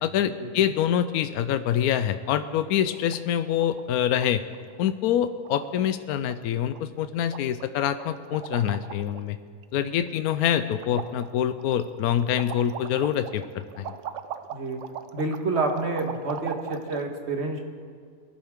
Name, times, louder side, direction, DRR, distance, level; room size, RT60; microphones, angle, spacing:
voice 1, 0.0-4.4 4.8-9.4 9.7-13.9, left 10 dB, 80° left, 11 dB, 1.1 m, -25 dB
sound 1, 1.8-2.3 2.6-2.7 2.9-3.2 3.5-4.3 4.5-4.8 5.1-5.2 5.4-6.0 6.3-6.4 6.7-7.1 7.3-9.3 9.6-10.4 10.7-17.0, right 9 dB, 65° right, 0.9 m, -39 dB
voice 2, 15.1-17.6, right 3 dB, 50° right, 3 dB, 1.6 m, -28 dB
20.5 x 11.5 x 3.6 m, 2.2 s
omnidirectional pair, 1.6 m